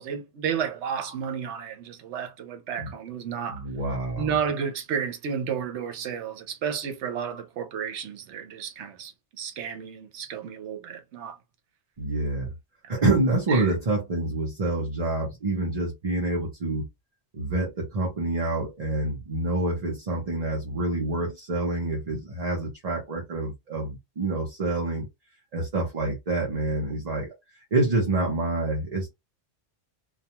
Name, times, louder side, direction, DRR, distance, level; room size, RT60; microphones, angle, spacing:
voice 1, 0.0-3.6 4.2-11.4 13.5-13.7, right 7 dB, 85° right, 1.0 m, -32 dB
voice 2, 3.5-4.4 12.0-12.5 12.9-16.9 17.3-25.1 25.5-27.3 27.7-29.1, right 2 dB, 40° right, 0.8 m, -27 dB
2.3 x 2.3 x 2.9 m
omnidirectional pair, 1.2 m